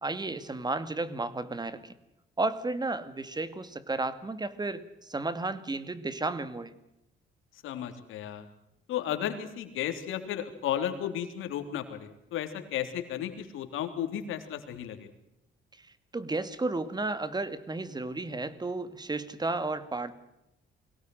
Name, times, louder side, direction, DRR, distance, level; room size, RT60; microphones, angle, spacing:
voice 1, 0.0-1.9 2.4-6.7 15.8-15.9 16.1-20.1, right 2 dB, 20° right, 13 dB, 2.2 m, -33 dB
voice 2, 7.6-8.4 8.9-15.1, left 10 dB, 85° left, 6 dB, 3.4 m, -34 dB
23.0 x 18.0 x 7.9 m, 0.87 s
cardioid pair, 90°, 20 cm